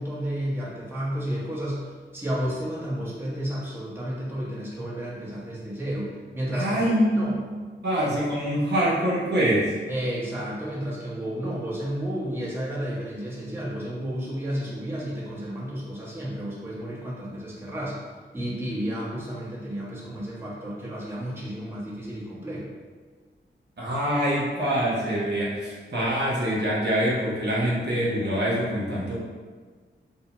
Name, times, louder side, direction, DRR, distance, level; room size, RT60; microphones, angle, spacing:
voice 1, 0.0-6.8 7.1-7.4 9.9-18.0 18.3-22.7, equal, 10° right, -7 dB, 0.9 m, -32 dB
voice 2, 6.5-7.4 7.8-9.8 23.8-29.1, equal, 55° right, -7 dB, 0.7 m, -24 dB
2.6 x 2.1 x 2.9 m, 1.5 s
cardioid pair, 45°, 21 cm